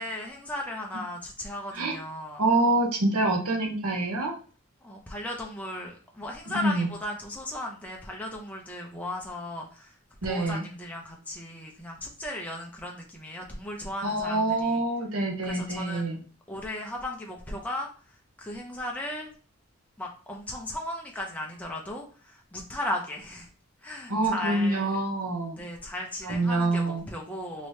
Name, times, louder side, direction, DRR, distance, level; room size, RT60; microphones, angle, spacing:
voice 1, 0.0-2.4 4.8-10.0 10.2-14.8 15.4-19.3 20.0-23.5 23.8-25.0 25.6-27.7, left 1 dB, 5° left, -1 dB, 0.4 m, -36 dB
voice 2, 2.4-4.3 6.5-6.9 10.2-10.7 14.0-16.2 24.1-25.6 26.2-27.0, right 2 dB, 85° right, 1 dB, 0.9 m, -26 dB
3.1 x 2.8 x 3.2 m, 0.40 s
head